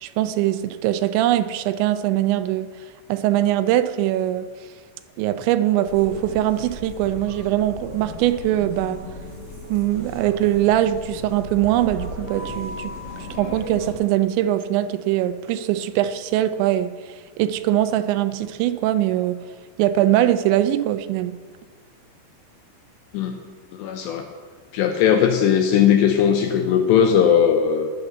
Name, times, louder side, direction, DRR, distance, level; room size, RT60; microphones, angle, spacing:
voice 1, 0.0-2.7 3.1-4.5 5.2-9.0 9.7-19.4 19.8-21.4, right 13 dB, 80° right, 2.7 m, -22 dB
sound 1, 5.9-13.9, left 1 dB, 15° left, 4.2 m, -36 dB
voice 2, 23.7-24.3 24.7-27.9, left 8 dB, 75° left, 2.7 m, -18 dB
18.5 x 6.9 x 6.8 m
omnidirectional pair, 5.6 m